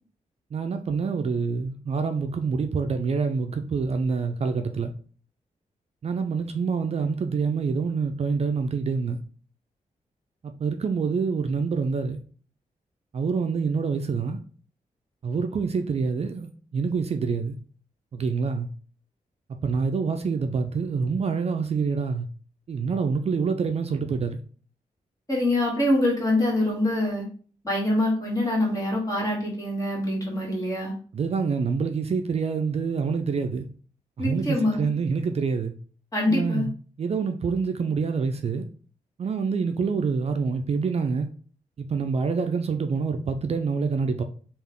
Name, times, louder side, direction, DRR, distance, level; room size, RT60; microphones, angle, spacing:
voice 1, 0.5-4.9 6.0-9.2 10.4-12.2 13.1-14.4 15.2-17.6 18.1-18.7 19.6-22.3 22.7-24.4 31.1-33.7 34.2-35.7 36.3-36.7 37.0-38.7 39.2-41.3 41.8-44.2, right 5 dB, 50° right, 0.4 m, -26 dB
voice 2, 25.3-27.2 27.6-30.9 34.2-34.9 36.1-36.7, left 1 dB, 25° left, 1.8 m, -24 dB
3.4 x 2.5 x 3.6 m
cardioid pair, 75°, 14 cm